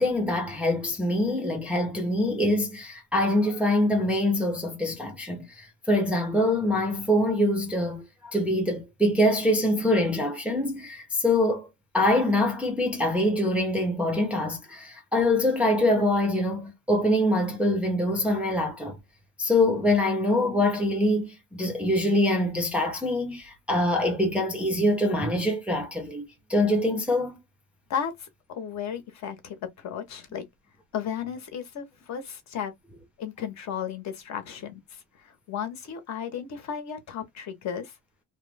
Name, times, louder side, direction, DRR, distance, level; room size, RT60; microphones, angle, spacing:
voice 1, 0.0-11.7 11.9-19.0 19.4-27.4, left 1 dB, 5° right, 0.5 m, -24 dB
voice 2, 27.9-30.5 30.9-32.7 33.2-37.9, left 8 dB, 50° left, 0.9 m, -34 dB
3.0 x 2.0 x 3.2 m
cardioid pair, 170°, 37 cm